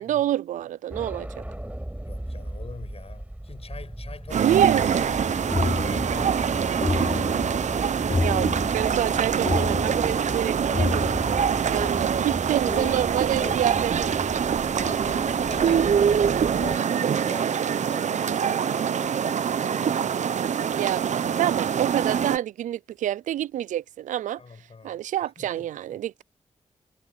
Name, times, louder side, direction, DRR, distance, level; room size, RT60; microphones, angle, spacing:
voice 1, 0.0-1.4 4.4-4.8 8.2-11.1 11.7-14.3 20.7-21.1 21.4-24.4 24.8-26.2, right 12 dB, 90° right, 0.4 m, -27 dB
sound 1, 0.9-16.8, right 1 dB, 10° right, 5.2 m, -36 dB
voice 2, 2.0-7.6 9.9-11.1 11.3-12.2 12.6-13.1 13.4-13.6 14.0-20.1 21.3-21.4 24.4-26.2, left 4 dB, 55° left, 6.2 m, -43 dB
sound 2, 4.3-22.4, right 7 dB, 70° right, 0.8 m, -24 dB
sound 3, 5.5-11.9, left 2 dB, 30° left, 3.1 m, -29 dB
supercardioid pair, 45°, 13 cm